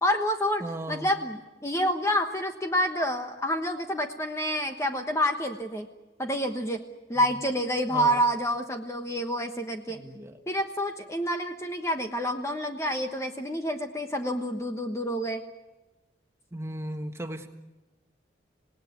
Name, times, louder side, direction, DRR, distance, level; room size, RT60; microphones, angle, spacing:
voice 1, 0.0-5.9 6.2-6.8 7.1-10.0 10.5-15.4, equal, 15° left, 5 dB, 1.2 m, -28 dB
voice 2, 0.6-1.1 7.9-8.2 9.9-10.4 16.5-17.5, right 1 dB, 15° right, 6 dB, 1.6 m, -36 dB
27.0 x 18.5 x 9.5 m, 1.1 s
head